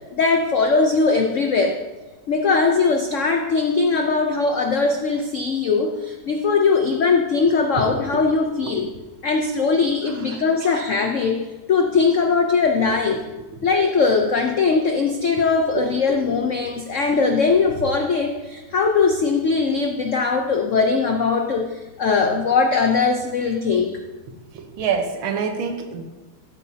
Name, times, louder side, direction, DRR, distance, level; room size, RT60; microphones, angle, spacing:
voice 1, 0.1-1.8 2.3-8.9 9.2-11.4 11.7-13.3 13.6-24.0, left 4 dB, 85° left, 3 dB, 0.6 m, -20 dB
voice 2, 10.1-10.8 15.7-16.5 24.5-26.0, right 6 dB, 80° right, 5 dB, 1.8 m, -28 dB
13.0 x 8.2 x 2.8 m, 1.2 s
omnidirectional pair, 2.2 m